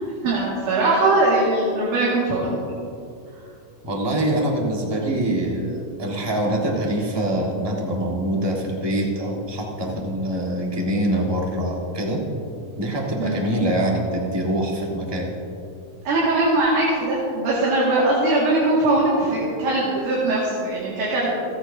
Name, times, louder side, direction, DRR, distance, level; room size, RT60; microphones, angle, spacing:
voice 1, 0.2-2.6 13.2-13.4 16.1-21.3, right 2 dB, 75° right, -7 dB, 3.6 m, -21 dB
voice 2, 3.8-12.2 12.8-15.3, right 1 dB, 25° right, -2 dB, 0.5 m, -24 dB
28.5 x 9.7 x 2.7 m, 2.6 s
omnidirectional pair, 3.6 m